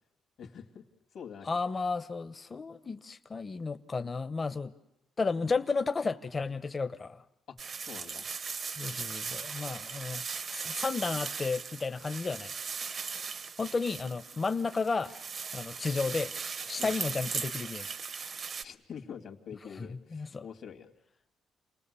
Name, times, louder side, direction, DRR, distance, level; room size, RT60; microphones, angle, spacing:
voice 1, 0.4-0.8 1.1-1.5 7.5-8.3 16.8-16.9 18.6-20.9, left 7 dB, 65° left, 3 dB, 2.5 m, -46 dB
voice 2, 1.4-4.7 5.2-7.2 8.8-10.2 10.5-12.5 13.6-15.2 15.5-16.3 16.7-17.9 19.8-20.5, left 4 dB, 30° left, 10 dB, 0.9 m, -33 dB
sound 1, 7.6-18.6, right 5 dB, 45° right, 0.8 m, -38 dB
29.0 x 19.5 x 7.0 m, 0.88 s
cardioid pair, 90°, 0 cm